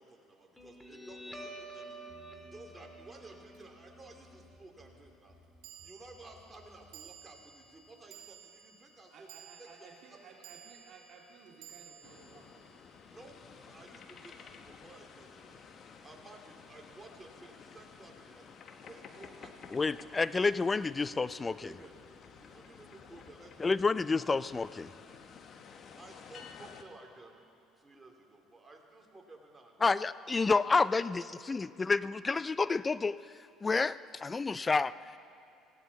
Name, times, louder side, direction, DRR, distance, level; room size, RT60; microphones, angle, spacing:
voice 1, 0.0-2.0 2.4-5.3 5.8-9.3 9.6-9.7 10.1-10.3 13.1-15.6 16.0-18.4 18.8-19.9 20.2-20.3 20.8-20.9 21.4-21.9 22.4-23.7 25.9-27.4 27.8-29.9, right 2 dB, 20° right, 0 dB, 2.7 m, -54 dB
Guitar, 0.6-7.6, right 1 dB, 5° left, 2.0 m, -50 dB
sound 1, 3.5-3.6 5.6-14.1, right 8 dB, 75° right, 1.5 m, -56 dB
voice 2, 9.1-12.8 30.8-31.8, right 4 dB, 60° right, -2 dB, 2.2 m, -56 dB
sound 2, 12.0-26.8, left 6 dB, 50° left, 1.0 m, -53 dB
voice 3, 19.7-21.7 23.6-24.9 29.8-31.2 31.5-33.2 33.6-34.9, left 4 dB, 25° left, 17 dB, 0.4 m, -29 dB
18.5 x 15.5 x 4.1 m, 2.7 s
supercardioid pair, 75°, 0 cm